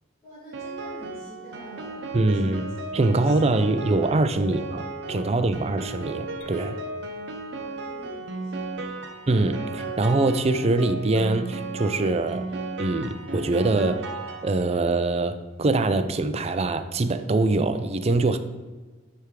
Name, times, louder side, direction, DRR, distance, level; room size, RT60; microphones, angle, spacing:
voice 1, 0.2-2.6 3.2-5.6 7.5-9.0, equal, 25° left, 2.6 m, -45 dB
Piano, 0.5-14.9, right 3 dB, 65° right, 0.8 m, -35 dB
voice 2, 2.1-2.6 2.9-4.6 5.1-6.8 9.3-12.5 12.8-14.0 14.4-18.4, right 2 dB, 35° right, 0.5 m, -23 dB
Chink clink, 6.4-10.9, left 5 dB, 75° left, 0.8 m, -45 dB
10.5 x 3.5 x 4.8 m
head